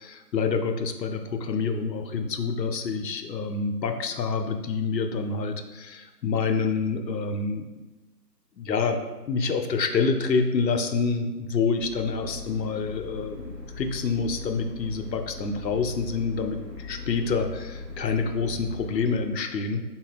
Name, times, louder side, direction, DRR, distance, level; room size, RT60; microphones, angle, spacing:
voice 1, 0.0-7.7 8.6-9.0 9.3-19.8, left 4 dB, 80° left, 6 dB, 0.6 m, -27 dB
sound 1, 11.8-19.2, left 3 dB, 85° right, 1.1 m, -40 dB
4.1 x 3.6 x 2.3 m, 1.1 s
figure-of-eight pair, 160°, 50 cm